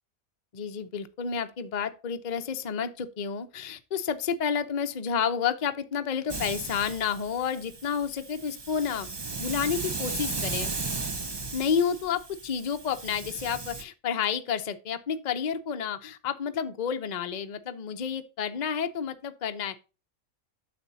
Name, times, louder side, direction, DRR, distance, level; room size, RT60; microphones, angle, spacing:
voice 1, 0.5-9.1 9.4-10.8 11.5-19.8, left 7 dB, 40° left, 0.7 m, -30 dB
Hiss, 6.3-13.8, right 3 dB, 25° right, 0.6 m, -36 dB
9.6 x 6.7 x 2.7 m
omnidirectional pair, 1.5 m